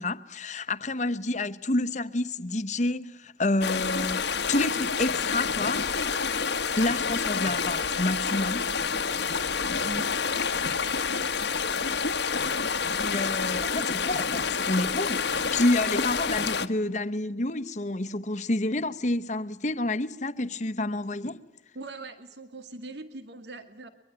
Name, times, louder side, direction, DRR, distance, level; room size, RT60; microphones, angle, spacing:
voice 1, 0.0-6.2 6.8-8.7 13.0-15.3 15.5-21.4, left 2 dB, 40° left, 1.1 m, -29 dB
sound 1, 3.6-16.7, left 5 dB, 75° left, 1.2 m, -28 dB
voice 2, 9.7-10.1 21.7-23.9, right 2 dB, 75° right, 2.0 m, -41 dB
23.0 x 23.0 x 8.9 m
head